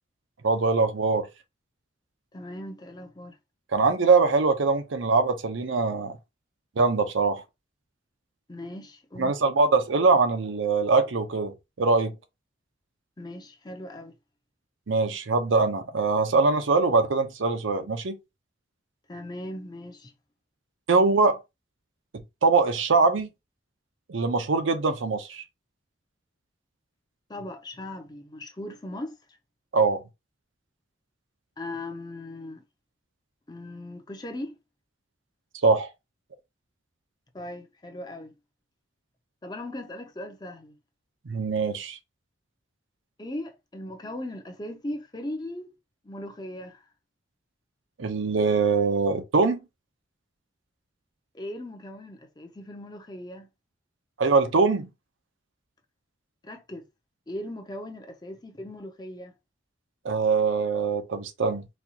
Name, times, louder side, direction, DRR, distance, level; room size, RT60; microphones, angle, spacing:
voice 1, 0.4-1.3 3.7-6.2 6.8-7.4 9.2-12.2 14.9-18.2 20.9-21.4 22.1-23.3 24.1-25.4 29.7-30.0 35.6-35.9 41.3-42.0 48.0-49.6 54.2-54.9 60.0-61.6, right 4 dB, 75° right, 0.6 m, -23 dB
voice 2, 2.3-3.4 8.5-9.3 13.2-14.2 19.1-20.1 27.3-29.2 31.6-32.6 33.5-34.6 37.3-38.3 39.4-40.8 43.2-45.7 46.0-46.9 51.3-53.5 56.4-56.9 57.3-59.3, left 1 dB, 20° left, 0.5 m, -38 dB
4.2 x 2.3 x 2.8 m
head